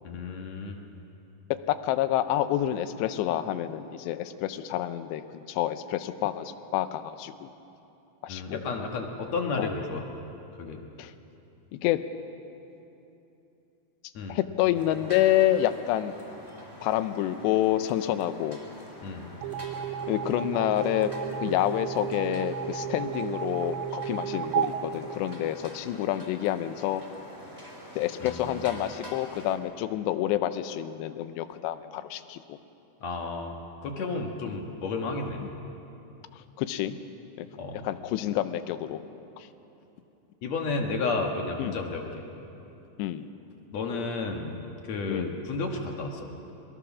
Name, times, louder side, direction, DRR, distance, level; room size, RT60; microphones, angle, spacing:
voice 1, 0.0-0.8 8.3-10.0 10.6-10.8 14.1-14.4 19.0-19.3 28.2-28.6 33.0-33.6 33.8-35.5 37.6-37.9 40.4-42.2 43.7-44.6 44.8-46.3, left 3 dB, 60° left, 2 dB, 1.9 m, -32 dB
voice 2, 1.7-7.5 8.2-8.6 9.6-9.7 11.0-11.1 11.7-12.0 14.3-16.1 16.8-18.6 20.1-21.1 21.4-27.0 28.0-32.6 34.5-34.6 35.4-35.5 36.3-37.0 37.4-37.5 37.8-39.0 39.4-39.5 41.6-41.8 43.0-43.3 45.1-45.4, left 12 dB, 85° left, 11 dB, 2.9 m, -28 dB
sound 1, 14.7-29.6, equal, 5° left, 2.3 m, -46 dB
sound 2, 19.4-25.9, right 8 dB, 85° right, 2.9 m, -33 dB
22.5 x 21.5 x 6.1 m, 2.9 s
omnidirectional pair, 5.0 m